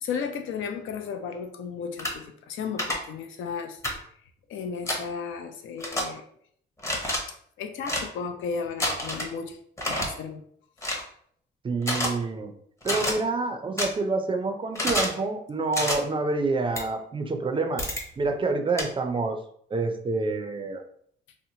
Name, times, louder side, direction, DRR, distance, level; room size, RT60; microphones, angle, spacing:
voice 1, 0.0-3.8 4.5-6.3 7.6-9.6 9.9-10.4, left 6 dB, 75° left, 6 dB, 0.4 m, -34 dB
sound 1, 2.0-2.1 2.8-2.9 3.8-4.0 4.9-5.0 5.8-6.0 6.8-7.2 7.8-8.0 8.8-9.3 9.8-10.1 10.8-11.0 11.8-12.1 12.8-13.1 13.8-13.9 14.8-15.1 15.7-16.0 16.8-16.9 17.8-18.0 18.8-18.9, left 1 dB, 15° left, 0.7 m, -27 dB
voice 2, 11.6-12.5 12.8-17.8 18.2-19.4 19.7-20.8, right 3 dB, 25° right, 5 dB, 0.4 m, -27 dB
2.9 x 2.1 x 2.7 m, 0.64 s
cardioid pair, 90°, 20 cm